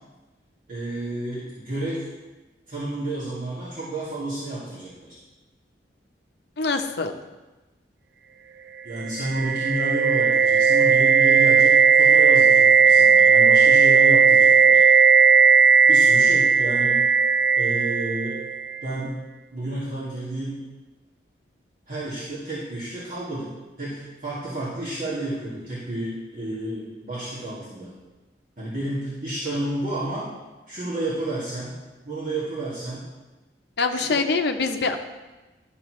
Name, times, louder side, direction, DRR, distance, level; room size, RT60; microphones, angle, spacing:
voice 1, 0.7-2.1 2.7-5.2 8.8-15.0 15.9-17.0 17.6-18.4 18.8-19.2 19.5-20.6 21.9-27.9 28.6-30.3 30.7-31.7 32.0-33.0 33.9-34.2, right 1 dB, 45° right, -10 dB, 2.0 m, -31 dB
voice 2, 6.6-7.2 33.8-35.0, left 4 dB, 65° left, 6 dB, 0.7 m, -24 dB
sound 1, 9.0-18.8, right 5 dB, 70° right, 0.3 m, -16 dB
11.5 x 6.7 x 3.1 m, 1.1 s
head